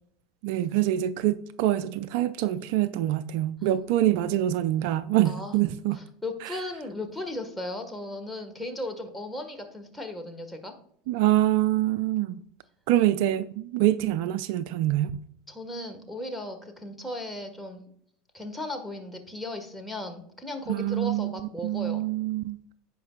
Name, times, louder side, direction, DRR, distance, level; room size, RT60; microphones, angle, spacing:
voice 1, 0.4-6.0 6.4-6.6 11.1-12.4 12.9-15.1 20.7-22.6, right 13 dB, 60° right, 0.4 m, -25 dB
voice 2, 6.2-10.7 15.5-17.8 18.3-22.0, left 1 dB, 5° left, 1.6 m, -36 dB
15.5 x 5.3 x 2.4 m
figure-of-eight pair, 80°, 0 cm